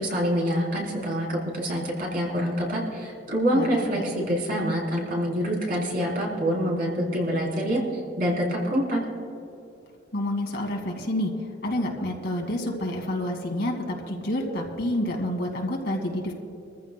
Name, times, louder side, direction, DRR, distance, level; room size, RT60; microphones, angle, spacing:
voice 1, 0.0-7.8 8.2-9.0, equal, 50° right, -2 dB, 3.6 m, -26 dB
voice 2, 10.1-11.3 11.6-16.3, left 1 dB, 60° left, 0 dB, 2.3 m, -28 dB
24.0 x 14.5 x 2.2 m, 2.7 s
head